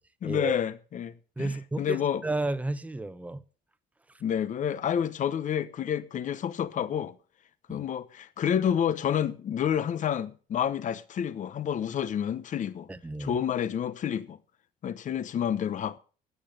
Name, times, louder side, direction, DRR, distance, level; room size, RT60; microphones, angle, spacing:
voice 1, 0.2-2.2 4.2-7.1 7.7-12.9 13.2-14.4 14.8-16.0, left 9 dB, 50° left, 0.9 m, -29 dB
voice 2, 1.4-3.4 7.7-7.9 12.9-13.4, right 2 dB, 10° right, 0.9 m, -32 dB
13.0 x 8.9 x 6.8 m
cardioid pair, 110°, 17 cm